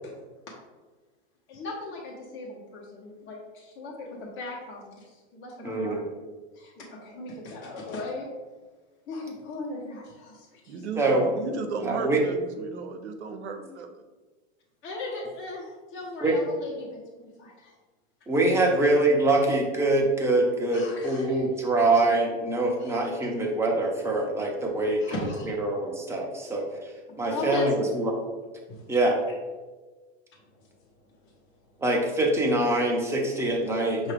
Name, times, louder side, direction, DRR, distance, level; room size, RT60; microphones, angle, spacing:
voice 1, 1.5-6.0 6.5-8.3 9.1-10.8 14.8-17.0 17.4-17.7 20.7-21.5 22.8-23.0 25.0-25.5 27.1-27.7 28.7-29.0 30.5-30.7 31.1-31.3 33.7-33.8 34.0-34.1, left 2 dB, 35° left, -4 dB, 1.2 m, -38 dB
voice 2, 5.6-6.1 11.0-11.4 11.8-12.2 16.2-16.4 18.3-25.0 25.5-26.9 27.2-28.1 28.9-29.2 31.8-34.1, right 2 dB, 10° right, -1 dB, 0.8 m, -24 dB
voice 3, 10.7-13.9, right 4 dB, 85° right, 6 dB, 0.7 m, -34 dB
5.6 x 2.7 x 3.4 m, 1.3 s
hypercardioid pair, 120°, 33 cm